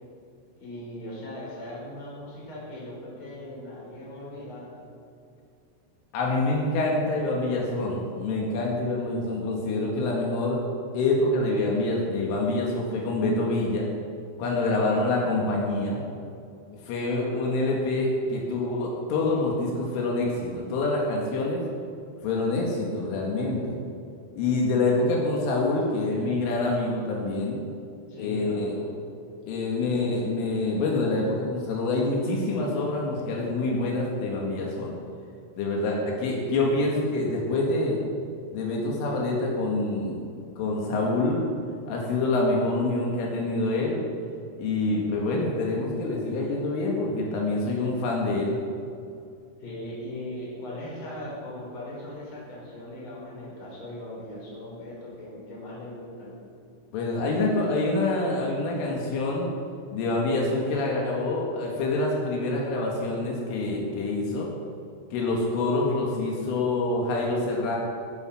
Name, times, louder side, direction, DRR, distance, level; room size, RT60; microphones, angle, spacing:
voice 1, 0.6-4.7 17.1-17.6 28.1-29.0 49.6-56.3, left 1 dB, 25° left, -5 dB, 5.2 m, -39 dB
voice 2, 6.1-10.6 10.9-13.9 14.4-16.0 16.8-21.6 22.2-23.8 24.4-27.6 28.2-28.7 29.5-34.9 35.6-38.0 38.5-40.3 40.6-41.5 41.9-44.0 44.6-48.6 56.9-59.5 59.9-64.5 65.1-67.8, left 2 dB, 80° left, -2 dB, 4.5 m, -26 dB
18.0 x 10.5 x 5.9 m, 2.4 s
omnidirectional pair, 5.7 m